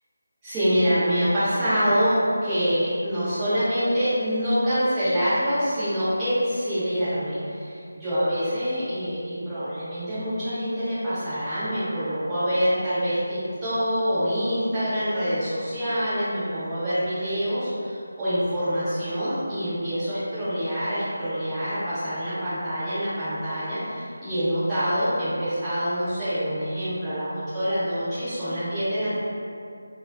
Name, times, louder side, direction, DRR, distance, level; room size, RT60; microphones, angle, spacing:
voice 1, 0.4-2.1 2.4-29.1, equal, 10° right, -16 dB, 0.9 m, -26 dB
2.4 x 2.3 x 2.3 m, 2.4 s
figure-of-eight pair, 165°, 0 cm